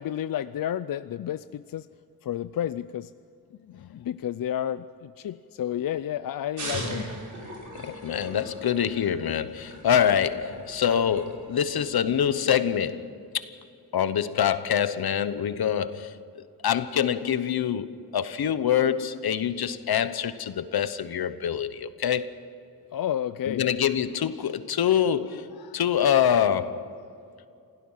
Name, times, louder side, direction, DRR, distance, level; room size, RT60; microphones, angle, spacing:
voice 1, 0.0-1.9 2.2-3.1 3.7-7.1 22.9-23.7, left 10 dB, 65° left, 0.5 m, -31 dB
sound 1, 6.6-12.2, right 1 dB, 55° right, 5.2 m, -39 dB
voice 2, 7.8-13.2 13.9-22.4 23.5-27.0, left 9 dB, 85° left, 1.0 m, -25 dB
27.0 x 17.0 x 5.7 m
wide cardioid pair, 155°, 36 cm